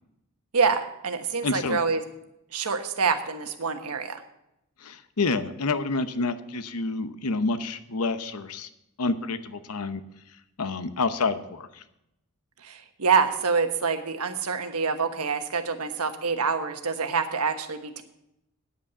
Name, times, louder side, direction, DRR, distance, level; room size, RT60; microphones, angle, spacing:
voice 1, 0.5-2.0 2.5-4.2 12.6-18.0, right 5 dB, 90° right, 7 dB, 1.2 m, -26 dB
voice 2, 1.4-1.8 4.8-8.7 9.0-10.0 10.6-11.8, left 3 dB, 85° left, 11 dB, 0.9 m, -28 dB
9.8 x 8.6 x 6.8 m, 0.84 s
head